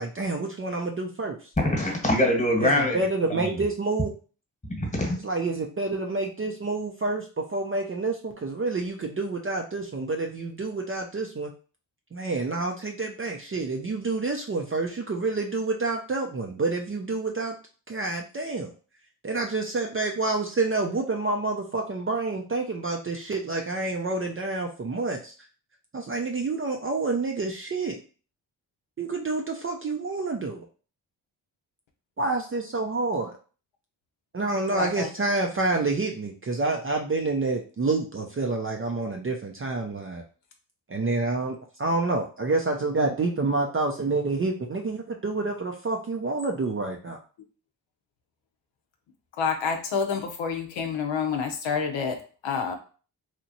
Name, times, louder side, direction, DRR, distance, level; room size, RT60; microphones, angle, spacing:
voice 1, 0.0-1.4 2.6-4.1 5.2-11.5 12.1-17.6 17.9-18.7 19.2-25.3 25.9-28.0 29.0-30.6 32.2-33.3 34.3-40.2 40.9-47.2, right 3 dB, 30° right, 1 dB, 0.5 m, -28 dB
voice 2, 1.6-3.0 3.4-3.6 4.8-5.2, left 1 dB, 15° left, 1 dB, 1.3 m, -23 dB
voice 3, 34.7-35.1 49.4-52.7, left 6 dB, 70° left, 4 dB, 0.7 m, -28 dB
3.0 x 2.4 x 2.7 m, 0.38 s
supercardioid pair, 50°, 48 cm